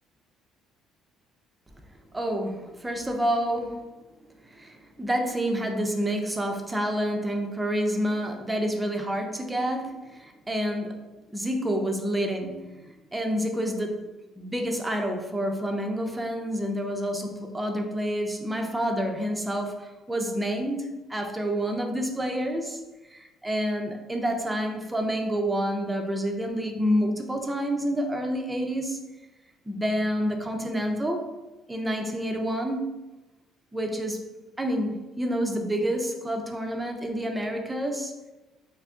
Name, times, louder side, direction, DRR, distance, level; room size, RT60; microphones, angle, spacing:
voice 1, 2.1-3.9 4.4-11.0 11.3-14.0 14.4-22.8 23.1-29.0 29.7-31.2 31.7-32.9 33.7-34.2 34.6-38.1, equal, 10° right, 3 dB, 0.3 m, -28 dB
2.7 x 2.5 x 3.4 m, 1.1 s
cardioid pair, 165°, 0 cm